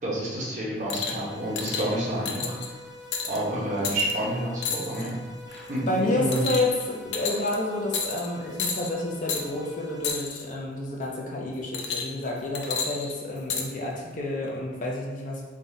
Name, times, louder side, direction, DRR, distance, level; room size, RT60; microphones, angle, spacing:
voice 1, 0.0-2.6 3.2-5.2 5.5-6.4, right 1 dB, 45° right, -6 dB, 1.1 m, -29 dB
sound 1, 0.9-1.2 1.6-1.9 2.2-2.7 3.1-3.4 3.8-4.1 4.6-5.1 5.5-5.8 6.3-6.8 7.1-7.5 7.9-8.3 8.6-8.9 9.3-9.4 10.0-10.4 11.7-12.2 12.5-13.7 14.5-14.6, left 5 dB, 90° left, 0.5 m, -31 dB
sound 2, 1.1-10.1, left 1 dB, 60° right, 1.2 m, -45 dB
voice 2, 5.9-15.4, left 2 dB, 45° left, -2 dB, 0.6 m, -29 dB
4.0 x 2.4 x 3.9 m, 1.3 s
head